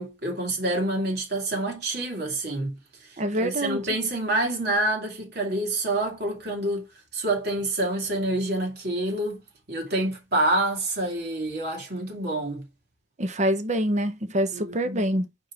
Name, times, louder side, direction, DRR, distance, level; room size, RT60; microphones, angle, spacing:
voice 1, 0.0-6.9 7.1-9.4 9.7-12.7 14.5-15.0, right 1 dB, 60° right, 2.2 m, -27 dB
voice 2, 3.2-3.8 13.2-15.3, equal, 40° right, 0.9 m, -25 dB
4.6 x 4.5 x 4.9 m
head